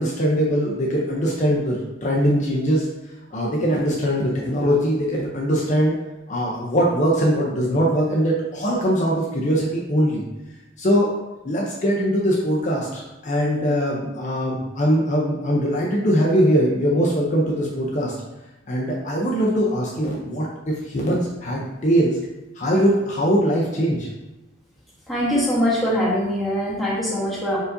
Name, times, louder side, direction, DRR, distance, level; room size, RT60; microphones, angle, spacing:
voice 1, 0.0-2.9 3.3-6.0 6.3-10.2 10.8-11.1 11.4-18.1 18.7-22.2 22.6-24.1, equal, 40° left, -3 dB, 0.6 m, -21 dB
voice 2, 25.1-27.6, equal, ahead, -7 dB, 1.2 m, -22 dB
4.5 x 4.0 x 2.6 m, 1.0 s
head